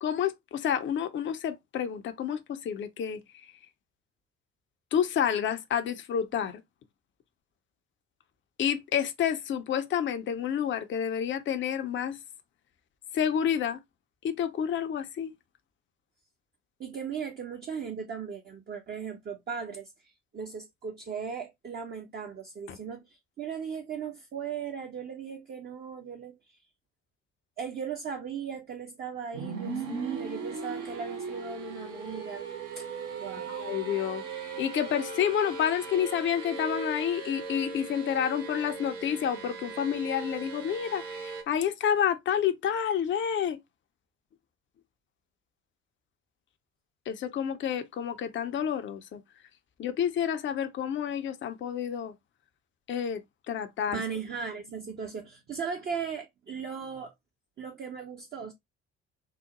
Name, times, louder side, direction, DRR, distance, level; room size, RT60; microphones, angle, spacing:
voice 1, 0.0-3.5 4.9-6.6 8.6-12.2 13.1-13.8 14.2-15.3 22.7-22.8 33.5-34.2 34.6-43.6 47.1-49.2 49.8-52.1 52.9-53.2 53.5-54.0, left 9 dB, 30° left, 0.5 m, -29 dB
voice 2, 16.8-26.6 27.6-32.4 32.8-32.9 33.2-33.5 53.9-57.1 57.6-58.5, right 6 dB, 25° right, 0.6 m, -37 dB
sound 1, 29.3-41.4, right 4 dB, 65° right, 0.9 m, -38 dB
3.8 x 2.0 x 2.8 m
figure-of-eight pair, 50°, 37 cm